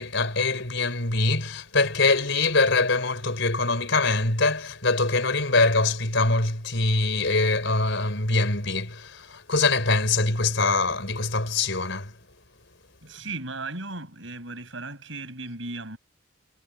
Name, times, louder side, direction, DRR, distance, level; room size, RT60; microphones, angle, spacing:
voice 1, 0.0-12.1, left 3 dB, 60° left, 5.6 m, -23 dB
voice 2, 13.0-16.0, right 3 dB, 65° right, 7.7 m, -36 dB
head